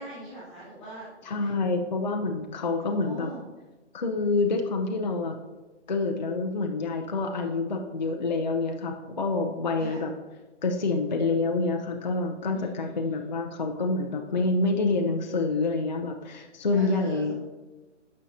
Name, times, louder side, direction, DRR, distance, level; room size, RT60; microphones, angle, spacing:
voice 1, 0.0-1.6 2.8-3.4 9.7-10.0 12.5-13.3 16.7-17.3, right 1 dB, 5° left, -13 dB, 0.8 m, -42 dB
voice 2, 1.3-3.3 3.9-5.4 5.9-10.1 10.6-17.3, left 3 dB, 40° left, 3 dB, 0.4 m, -27 dB
9.9 x 6.2 x 2.7 m, 1.2 s
hypercardioid pair, 180°, 36 cm